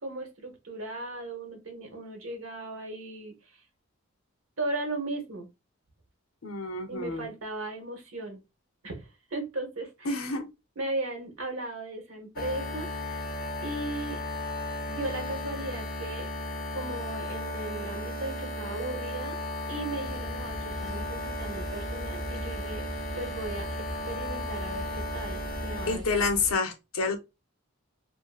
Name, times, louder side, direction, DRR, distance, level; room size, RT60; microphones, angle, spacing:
voice 1, 0.0-3.3 4.6-5.5 6.9-8.4 8.8-10.2 10.8-13.2 13.6-14.2 14.9-16.3 16.7-19.4 19.7-22.8 23.2-26.2, right 2 dB, 80° right, 1.0 m, -37 dB
voice 2, 6.4-7.3 10.1-10.5 25.9-27.2, left 4 dB, 90° left, 0.7 m, -28 dB
sound 1, 12.4-26.0, left 1 dB, 45° left, 0.5 m, -35 dB
sound 2, 20.0-26.5, equal, 5° left, 0.6 m, -41 dB
2.6 x 2.5 x 2.4 m
head